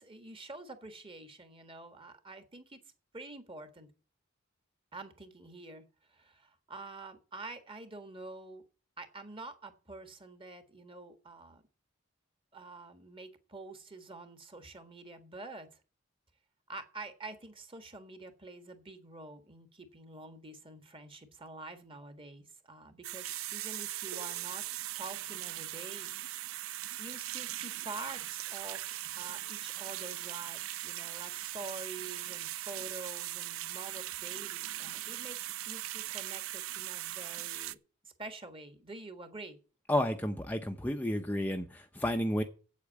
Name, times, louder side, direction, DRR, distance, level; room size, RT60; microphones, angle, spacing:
voice 1, 0.0-2.8 3.1-3.9 4.9-5.8 6.1-8.6 9.0-11.6 12.5-15.7 16.7-24.6 24.9-26.5 27.0-37.8 38.0-39.6, right 3 dB, 25° right, 8 dB, 1.6 m, -47 dB
sound 1, 23.0-37.7, right 14 dB, 80° right, 0.5 m, -40 dB
voice 2, 39.9-42.4, left 1 dB, 10° left, 4 dB, 0.7 m, -31 dB
8.3 x 8.3 x 8.3 m, 0.36 s
head